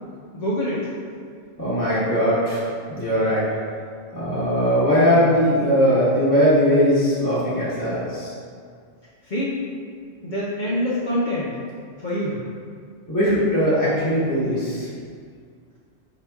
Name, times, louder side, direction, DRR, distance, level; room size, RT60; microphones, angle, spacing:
voice 1, 0.3-0.9 9.3-9.6 10.2-11.5 12.0-12.4, equal, 50° left, -7 dB, 0.6 m, -25 dB
voice 2, 1.6-2.6 2.9-3.4 4.1-8.3 13.1-14.9, equal, 20° left, -13 dB, 1.0 m, -20 dB
4.8 x 2.9 x 3.4 m, 2.1 s
omnidirectional pair, 1.3 m